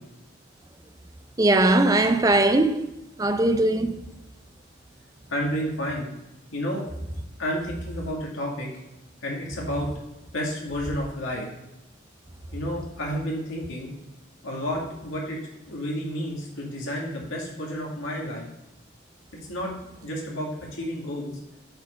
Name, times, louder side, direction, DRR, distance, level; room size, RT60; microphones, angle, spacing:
voice 1, 1.4-4.1, right 2 dB, 15° right, 0.4 m, -20 dB
voice 2, 5.3-6.1 6.5-6.9 7.4-8.7 9.2-9.9 10.3-11.5 12.5-13.9 14.4-18.4 19.5-19.7 20.0-21.4, equal, 75° left, 2.2 m, -31 dB
7.9 x 4.5 x 5.2 m
head